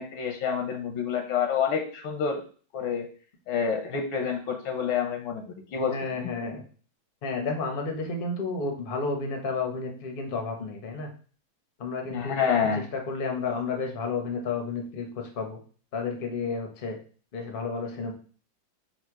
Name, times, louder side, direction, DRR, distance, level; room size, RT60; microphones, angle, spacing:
voice 1, 0.0-2.4 2.7-3.1 3.5-6.3 12.1-12.8, left 7 dB, 85° left, 3 dB, 1.6 m, -28 dB
voice 2, 5.8-6.6 7.2-11.1 11.8-12.5 12.9-15.1 15.4-15.6 15.9-17.0 17.3-18.1, left 4 dB, 50° left, 3 dB, 0.6 m, -31 dB
4.3 x 2.4 x 4.6 m, 0.41 s
omnidirectional pair, 2.2 m